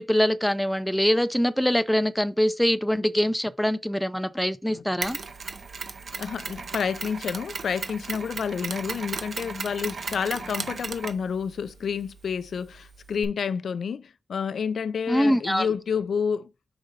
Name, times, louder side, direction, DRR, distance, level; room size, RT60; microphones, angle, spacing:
voice 1, 0.0-5.2 15.1-15.7, equal, 5° left, 0.4 m, -23 dB
Mechanisms, 5.0-13.3, right 4 dB, 60° right, 0.8 m, -36 dB
voice 2, 6.2-16.5, left 6 dB, 90° left, 0.3 m, -29 dB
5.0 x 3.9 x 5.2 m
wide cardioid pair, 140°, 0 cm